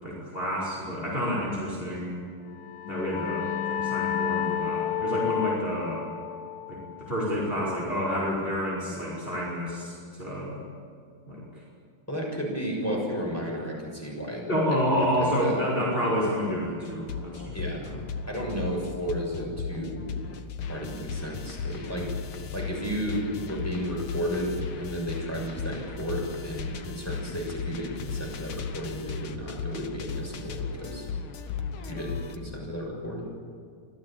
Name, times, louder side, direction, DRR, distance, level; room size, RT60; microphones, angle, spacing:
voice 1, 0.0-2.2 2.9-6.0 6.7-10.6 11.3-11.6 14.5-18.0, equal, 25° left, -5 dB, 5.4 m, -29 dB
sound 1, 2.5-7.9, left 9 dB, 60° left, 1.0 m, -31 dB
voice 2, 12.1-14.8 15.2-15.5 17.5-17.8 18.3-20.0 20.7-22.3 22.5-31.1 31.9-33.3, equal, 5° left, -1 dB, 6.7 m, -33 dB
sound 2, 16.9-32.4, left 5 dB, 75° left, 2.2 m, -36 dB
26.0 x 16.5 x 9.0 m, 2.3 s
omnidirectional pair, 2.3 m